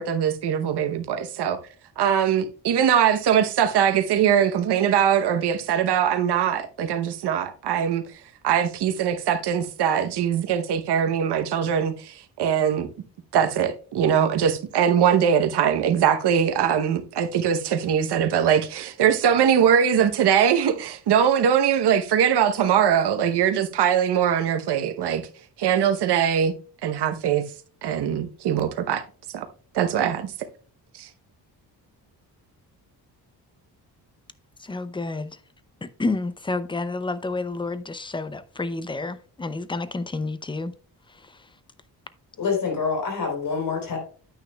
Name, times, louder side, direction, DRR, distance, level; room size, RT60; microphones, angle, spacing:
voice 1, 0.0-1.6 2.0-8.0 8.4-12.9 13.3-25.2 25.6-26.5 26.8-27.4 27.8-29.0 29.3-29.5 29.7-30.3 30.9-31.1, right 8 dB, 80° right, 0.9 m, -21 dB
voice 2, 34.6-35.4 35.8-40.7, left 3 dB, 15° left, 0.4 m, -29 dB
voice 3, 42.4-44.0, left 5 dB, 55° left, 3.7 m, -26 dB
9.1 x 8.9 x 2.2 m
cardioid pair, 130°, 40 cm